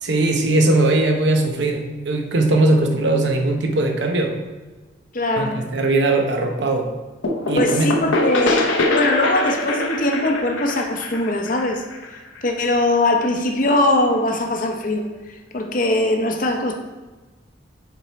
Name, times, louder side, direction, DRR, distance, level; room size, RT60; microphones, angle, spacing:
voice 1, 0.0-4.3 5.4-6.9 7.5-7.9, right 2 dB, 70° right, 3 dB, 0.8 m, -19 dB
voice 2, 5.1-5.6 7.5-11.8 12.4-15.1 15.5-16.8, left 1 dB, 45° left, 4 dB, 0.7 m, -21 dB
sound 1, 7.2-12.8, left 2 dB, 85° left, 0.8 m, -23 dB
6.8 x 4.6 x 4.2 m, 1.2 s
head